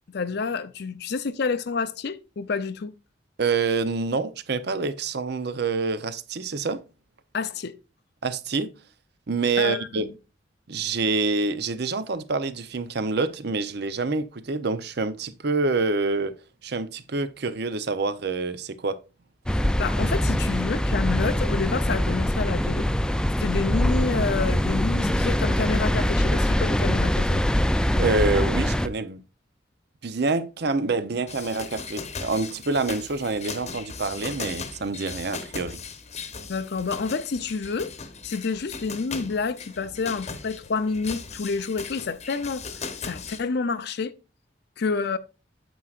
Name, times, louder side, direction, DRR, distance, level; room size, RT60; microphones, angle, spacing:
voice 1, 0.1-2.9 7.3-7.7 9.6-10.1 19.5-22.9 23.4-27.4 36.5-37.9 38.2-44.1 44.8-45.2, left 4 dB, 60° left, 0.5 m, -29 dB
voice 2, 3.4-6.8 8.2-8.7 9.3-10.1 10.7-16.3 16.6-19.0 28.0-29.2 30.0-35.8, right 3 dB, 60° right, 0.7 m, -27 dB
sound 1, 19.5-28.9, equal, 5° left, 0.3 m, -23 dB
sound 2, 31.3-43.4, left 5 dB, 40° left, 1.0 m, -38 dB
9.1 x 7.8 x 2.4 m
head